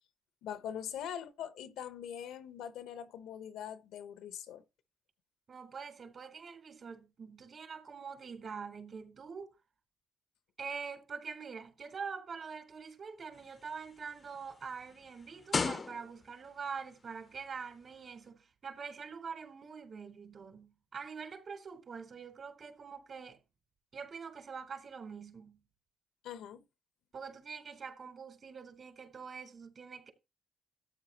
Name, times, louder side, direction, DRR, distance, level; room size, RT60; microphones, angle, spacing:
voice 1, 0.4-4.6 26.2-26.6, left 9 dB, 90° left, 0.9 m, -42 dB
voice 2, 5.5-9.5 10.6-23.4 23.9-25.6 27.1-30.1, right 5 dB, 50° right, 3.8 m, -45 dB
sound 1, 13.3-16.5 17.3-17.5, left 4 dB, 35° left, 0.6 m, -37 dB
13.5 x 9.1 x 2.9 m
cardioid pair, 90°, 0 cm